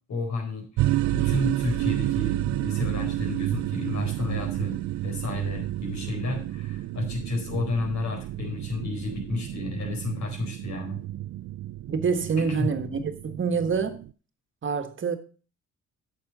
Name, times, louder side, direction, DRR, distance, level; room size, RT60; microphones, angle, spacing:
voice 1, 0.1-4.8 5.0-11.0 12.5-12.7, left 2 dB, 65° left, 4.4 m, -31 dB
sound 1, 0.8-14.1, right 15 dB, 70° right, 0.4 m, -30 dB
voice 2, 11.9-14.0 14.6-15.1, right 5 dB, 40° right, 1.6 m, -26 dB
8.8 x 6.7 x 6.1 m
cardioid pair, 90°, 30 cm